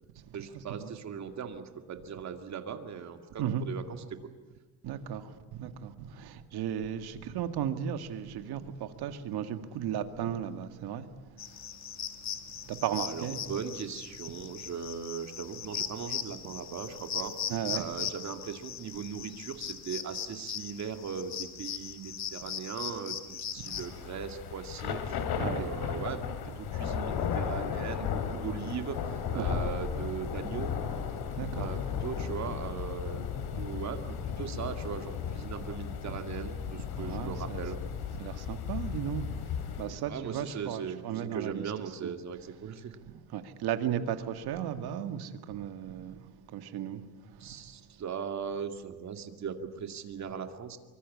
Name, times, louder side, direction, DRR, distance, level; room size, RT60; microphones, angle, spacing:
voice 1, 0.3-4.3 13.0-17.3 17.7-29.0 29.3-30.7 31.5-37.8 40.0-43.0 47.4-50.8, right 7 dB, 40° right, 2.3 m, -39 dB
voice 2, 4.8-11.5 12.7-13.4 17.5-17.9 25.3-25.7 29.3-29.6 31.4-31.7 33.5-33.7 36.1-36.2 37.0-37.6 38.2-41.7 42.0-42.1 43.3-46.2 46.5-47.0 47.3-47.6, right 9 dB, 60° right, 2.0 m, -35 dB
sound 1, 11.4-23.9, left 8 dB, 40° left, 1.9 m, -39 dB
Thunder / Rain, 23.7-40.0, left 7 dB, 60° left, 2.9 m, -35 dB
24.5 x 24.5 x 8.6 m
cardioid pair, 145°, 43 cm